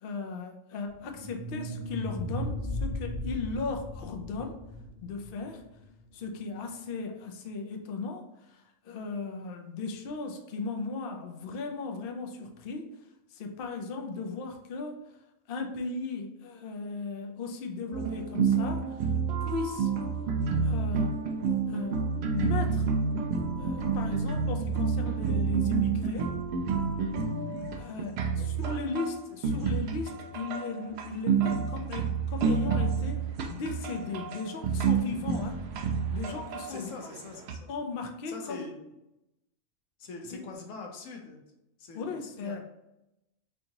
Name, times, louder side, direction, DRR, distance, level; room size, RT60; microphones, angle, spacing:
voice 1, 0.0-4.6 5.0-5.6 6.1-12.9 13.3-15.0 15.5-19.0 19.4-19.9 20.6-21.2 21.7-22.0 22.3-22.9 23.6-26.4 27.8-33.2 33.5-35.6 36.1-36.9 37.7-38.6 40.3-40.4 41.9-42.6, left 4 dB, 60° left, 3 dB, 0.6 m, -36 dB
sound 1, 0.9-6.0, left 1 dB, 85° right, 1.7 m, -36 dB
sound 2, 17.9-37.6, right 5 dB, 65° right, 0.7 m, -29 dB
voice 2, 36.7-37.7 38.3-38.9 40.0-41.4 41.8-42.6, left 3 dB, 75° left, 2 dB, 1.1 m, -43 dB
4.4 x 2.7 x 2.8 m, 0.91 s
omnidirectional pair, 1.4 m